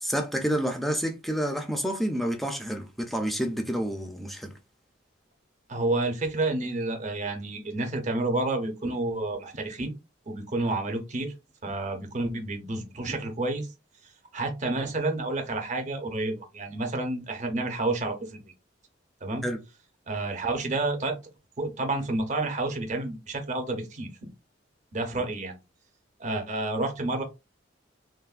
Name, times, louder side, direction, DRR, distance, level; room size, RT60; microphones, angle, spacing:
voice 1, 0.0-4.5 19.4-19.6, equal, ahead, 0.4 m, -29 dB
voice 2, 5.7-9.9 10.3-11.3 11.6-13.7 14.3-18.4 19.2-19.4 20.1-21.2 21.6-24.3 24.9-25.6 26.2-27.2, right 2 dB, 40° right, 0.6 m, -29 dB
3.3 x 2.1 x 2.3 m
head